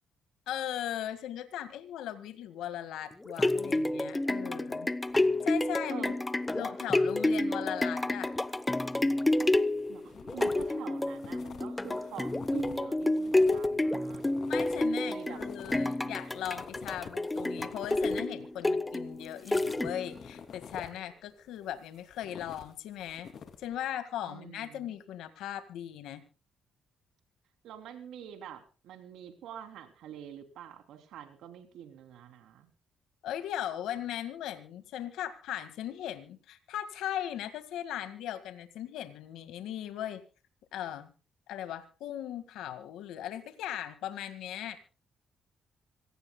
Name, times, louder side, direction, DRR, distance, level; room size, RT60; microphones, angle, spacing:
voice 1, 0.5-4.9 5.4-6.2 6.5-8.3 14.5-23.3 23.6-26.2 33.2-40.2 40.7-41.1 41.5-44.8, left 11 dB, 85° left, 10 dB, 1.9 m, -38 dB
sound 1, 3.1-20.2 20.7-20.8, left 2 dB, 15° left, 0.9 m, -29 dB
sound 2, 9.4-10.7 11.0-18.3 19.1-21.0 21.6-23.8, left 7 dB, 55° left, 2.8 m, -49 dB
voice 2, 9.9-14.3 15.1-15.4 24.2-24.9 27.6-32.7, right 9 dB, 85° right, 8 dB, 3.1 m, -46 dB
26.0 x 17.5 x 2.3 m, 0.34 s
cardioid pair, 90°, 0 cm